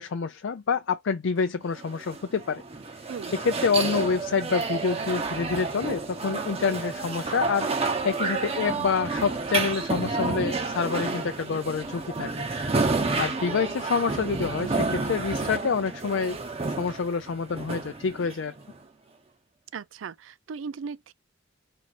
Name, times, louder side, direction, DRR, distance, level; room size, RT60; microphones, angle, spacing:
voice 1, 0.0-2.6 3.4-12.3 13.2-16.4 16.8-18.5, left 5 dB, 75° left, 0.4 m, -27 dB
sound 1, 1.8-18.8, right 3 dB, 30° right, 0.8 m, -30 dB
voice 2, 19.7-21.1, right 5 dB, 80° right, 0.4 m, -37 dB
4.3 x 2.8 x 4.2 m
head